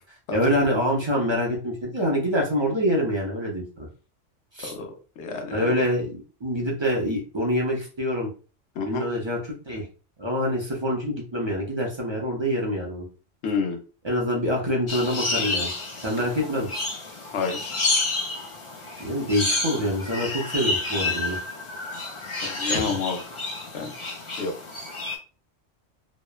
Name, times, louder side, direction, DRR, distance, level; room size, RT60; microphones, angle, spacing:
voice 1, 0.3-3.9 4.5-4.7 5.5-8.3 8.8-9.9 10.2-13.1 14.0-15.7 16.0-16.8 19.0-21.4 22.7-23.0, equal, 35° right, -2 dB, 0.4 m, -26 dB
voice 2, 4.6-5.7 8.8-9.1 13.4-13.8 17.3-17.7 22.4-23.2 23.7-23.9 24.4-24.6, left 5 dB, 70° left, 4 dB, 0.9 m, -29 dB
sound 1, 14.9-25.2, left 2 dB, 40° left, 0.4 m, -30 dB
2.9 x 2.0 x 2.2 m, 0.35 s
omnidirectional pair, 1.2 m